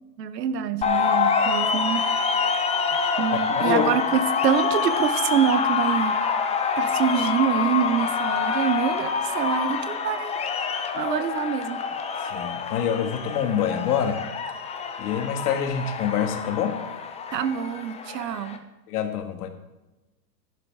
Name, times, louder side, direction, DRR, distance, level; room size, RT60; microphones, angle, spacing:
voice 1, 0.2-2.1 3.2-6.2 6.8-10.3 10.9-11.8 17.3-18.6, right 8 dB, 75° right, 13 dB, 1.0 m, -25 dB
sound 1, 0.8-18.6, left 5 dB, 15° left, 0.7 m, -26 dB
voice 2, 3.3-3.9 12.2-14.2 15.0-16.8 18.9-19.5, left 8 dB, 65° left, 6 dB, 1.8 m, -26 dB
12.5 x 11.0 x 3.6 m, 1.1 s
hypercardioid pair, 120°, 50 cm